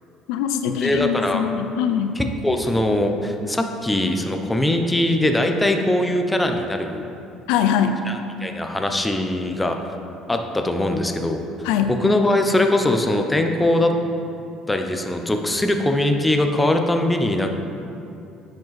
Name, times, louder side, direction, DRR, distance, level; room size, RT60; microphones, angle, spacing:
voice 1, 0.3-2.2 7.5-8.0 11.6-12.0, left 8 dB, 90° left, 7 dB, 0.4 m, -22 dB
voice 2, 0.8-1.4 2.1-7.0 8.1-9.8 10.3-11.4 11.9-13.9 14.7-17.5, left 1 dB, 10° left, 4 dB, 0.6 m, -21 dB
8.9 x 5.2 x 4.0 m, 2.6 s
cardioid pair, 115°, 0 cm